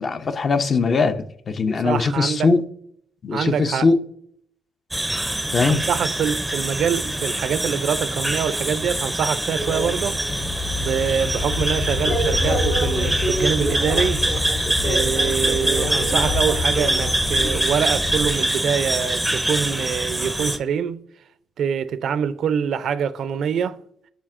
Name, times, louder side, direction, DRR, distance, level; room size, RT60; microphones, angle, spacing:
voice 1, 0.0-2.6 3.2-4.0 5.5-5.8, left 4 dB, 45° left, 0.5 m, -20 dB
voice 2, 1.8-2.5 3.3-3.9 5.7-10.5 10.8-14.3 14.8-21.0 21.6-23.8, right 7 dB, 65° right, 0.4 m, -25 dB
sound 1, 4.9-20.6, right 1 dB, 5° right, 0.5 m, -24 dB
sound 2, 9.6-18.3, left 1 dB, 70° left, 2.3 m, -26 dB
8.6 x 5.5 x 2.5 m
cardioid pair, 90°, 0 cm